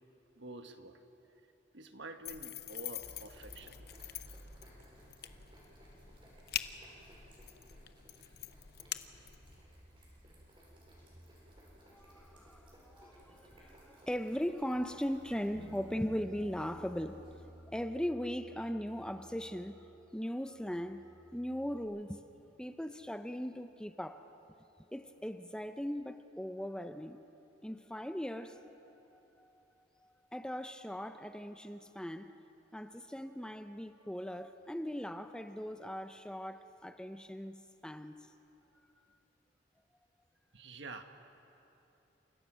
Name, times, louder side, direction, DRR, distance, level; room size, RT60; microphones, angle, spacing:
voice 1, 0.4-1.0 1.7-4.0 40.5-41.0, right 2 dB, 65° right, 1.7 m, -48 dB
sound 1, 2.2-9.6, left 11 dB, 55° left, 0.9 m, -45 dB
sound 2, 3.0-17.8, equal, 30° right, 7.0 m, -58 dB
voice 2, 11.9-22.2 22.6-24.3 24.9-27.2 27.6-28.6 29.4-29.5 30.0-32.4 32.7-38.3 39.0-39.1, equal, 5° left, 0.6 m, -39 dB
Bass guitar, 15.5-20.3 20.6-21.8, equal, 90° right, 5.6 m, -55 dB
30.0 x 28.0 x 6.3 m
head